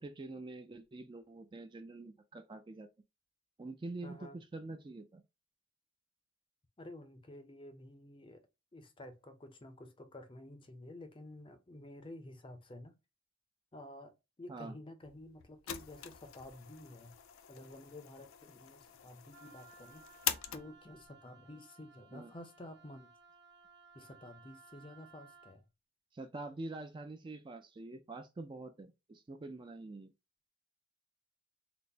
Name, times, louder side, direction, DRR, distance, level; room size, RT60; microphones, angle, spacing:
voice 1, 0.0-2.9 3.6-5.2 14.5-14.8 22.1-22.3 26.1-30.1, right 2 dB, 25° right, 0.3 m, -46 dB
voice 2, 4.0-4.4 6.8-8.4 8.7-13.0 13.7-17.1 17.5-20.1 20.5-23.1 23.9-25.7, left 1 dB, 25° left, 0.5 m, -51 dB
sound 1, 15.0-21.1, left 10 dB, 80° left, 0.4 m, -43 dB
Wind instrument woodwind instrument, 19.3-25.6, right 5 dB, 55° right, 0.8 m, -60 dB
4.0 x 2.0 x 3.3 m
head